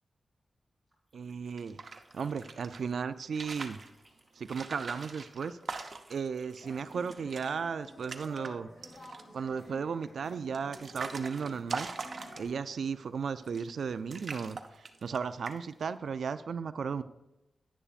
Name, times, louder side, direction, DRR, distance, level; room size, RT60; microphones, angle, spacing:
sound 1, 0.9-3.1 3.3-7.5, equal, ahead, 2.7 m, -63 dB
voice 1, 1.1-1.8 2.1-3.8 4.4-5.6 6.1-8.7 9.3-11.9 12.4-17.0, right 6 dB, 80° right, 12 dB, 0.4 m, -35 dB
sound 2, 1.5-2.8 3.2-3.9 4.5-6.3 6.7-6.8 7.0-7.5 7.8-8.5 8.8-9.4 10.0-12.7 13.4-13.8 14.1-15.2 15.5-15.8, right 4 dB, 55° right, 0.7 m, -42 dB
sound 3, 6.6-12.4, equal, 70° left, 3.4 m, -51 dB
10.0 x 9.7 x 2.5 m, 0.93 s
wide cardioid pair, 105°, 0 cm